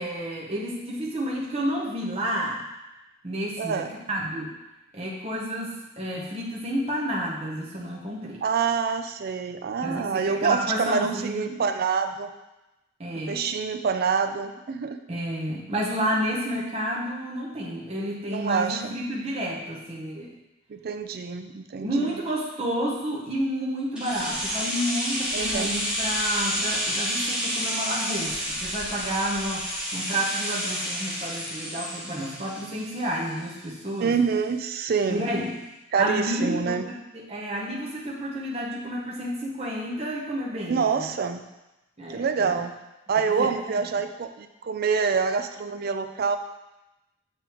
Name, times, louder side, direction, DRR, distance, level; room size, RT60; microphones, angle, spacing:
voice 1, 0.0-2.6 3.2-4.5 4.9-8.4 9.8-11.6 13.0-13.4 15.1-20.3 21.8-34.1 35.1-35.6 36.0-41.1 42.0-42.6, equal, 30° right, -4 dB, 0.9 m, -30 dB
voice 2, 3.6-3.9 8.4-12.3 13.3-15.0 18.3-19.0 20.7-21.9 25.3-25.7 34.0-35.3 35.9-36.8 40.7-41.4 42.1-42.7 43.1-46.4, right 5 dB, 50° right, 8 dB, 0.4 m, -26 dB
sound 1, 24.0-33.8 34.1-34.2, equal, 5° right, 1.3 m, -30 dB
8.9 x 3.5 x 3.0 m, 0.99 s
head